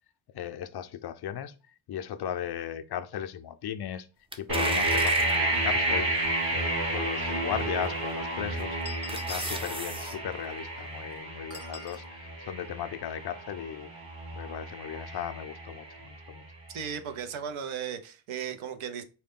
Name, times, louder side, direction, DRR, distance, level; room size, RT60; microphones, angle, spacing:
voice 1, 0.3-1.5 1.9-4.1 4.4-6.1 6.5-8.8 9.1-12.0 12.4-13.9 14.3-16.4, left 9 dB, 55° left, 0.5 m, -36 dB
sound 1, 4.3-5.5 6.1-6.2 7.8-8.2 8.6-10.1 10.5-10.6, right 1 dB, 10° right, 0.5 m, -37 dB
sound 2, 4.5-16.3, right 2 dB, 50° right, 1.6 m, -31 dB
sound 3, 8.8-9.7 11.5-12.0, left 3 dB, 30° right, 1.2 m, -44 dB
voice 2, 16.7-19.0, right 7 dB, 80° right, 0.7 m, -36 dB
4.3 x 2.2 x 3.6 m
cardioid pair, 95°, 48 cm